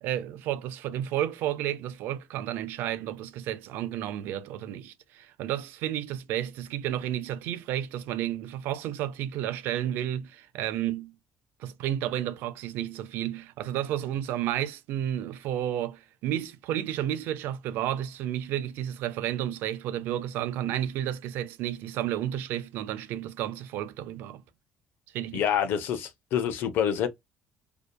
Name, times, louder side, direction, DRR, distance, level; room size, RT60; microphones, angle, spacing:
voice 1, 0.0-11.2 11.6-24.4 25.1-25.4, right 11 dB, 80° right, 0.4 m, -32 dB
voice 2, 25.3-27.1, left 9 dB, 75° left, 0.5 m, -27 dB
2.7 x 2.1 x 2.2 m
cardioid pair, 95°, 4 cm